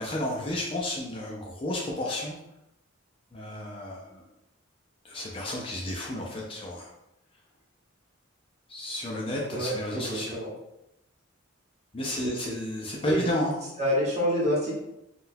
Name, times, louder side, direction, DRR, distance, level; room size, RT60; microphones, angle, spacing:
voice 1, 0.0-2.4 3.3-4.2 5.0-6.9 8.7-10.4 11.9-13.6, left 1 dB, 25° left, -3 dB, 0.4 m, -32 dB
voice 2, 9.5-10.5 12.2-12.5 13.1-13.3 13.8-14.8, equal, 35° right, -5 dB, 1.0 m, -28 dB
3.7 x 2.2 x 2.6 m, 0.84 s
head